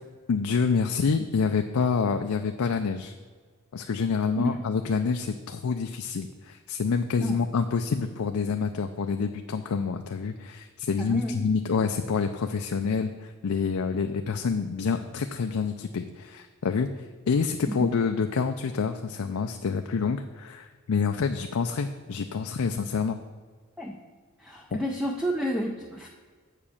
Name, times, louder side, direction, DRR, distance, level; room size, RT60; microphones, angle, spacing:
voice 1, 0.3-3.1 3.7-23.2 24.7-24.8, left 5 dB, 70° left, 6 dB, 0.4 m, -27 dB
voice 2, 11.0-11.5 17.7-17.8 23.8-24.0 24.4-26.1, equal, ahead, 1 dB, 0.5 m, -30 dB
7.5 x 5.0 x 6.9 m, 1.5 s
head